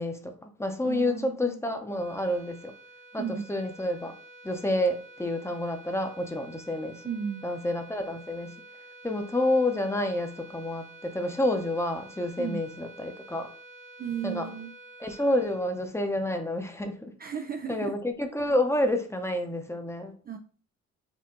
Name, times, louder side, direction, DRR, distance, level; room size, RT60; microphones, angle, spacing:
voice 1, 0.0-2.7 3.1-3.2 3.5-4.1 4.4-7.0 7.4-8.5 9.0-13.5 14.2-14.4 15.0-17.1 17.7-20.1, left 1 dB, 10° left, 5 dB, 0.8 m, -29 dB
voice 2, 0.8-1.7 3.2-3.5 7.0-7.5 12.4-12.6 14.0-14.7 17.2-18.0 20.2-20.4, right 7 dB, 30° right, 6 dB, 0.4 m, -34 dB
sound 1, 1.9-16.4, right 2 dB, 90° right, 1.0 m, -50 dB
4.5 x 2.7 x 3.8 m, 0.41 s
cardioid pair, 90°, 30 cm